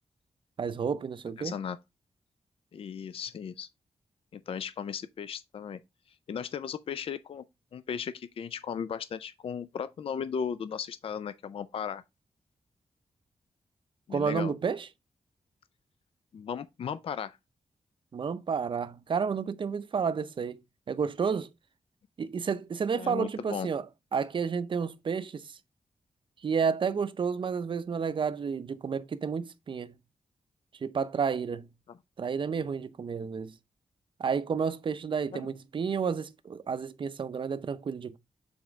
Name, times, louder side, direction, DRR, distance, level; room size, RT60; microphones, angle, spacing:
voice 1, 0.6-1.5 14.1-14.9 18.1-20.6 20.9-21.5 22.2-23.9 24.1-25.5 26.4-30.0 30.8-31.7 32.2-33.5 34.2-38.2, right 6 dB, 45° right, 0.5 m, -31 dB
voice 2, 1.4-1.8 2.7-3.7 4.3-5.8 6.3-7.4 7.7-12.0 14.1-14.5 16.3-17.4 23.0-23.7 31.9-32.0 35.3-35.4, left 7 dB, 55° left, 0.4 m, -36 dB
7.0 x 4.2 x 3.5 m
wide cardioid pair, 130°, 11 cm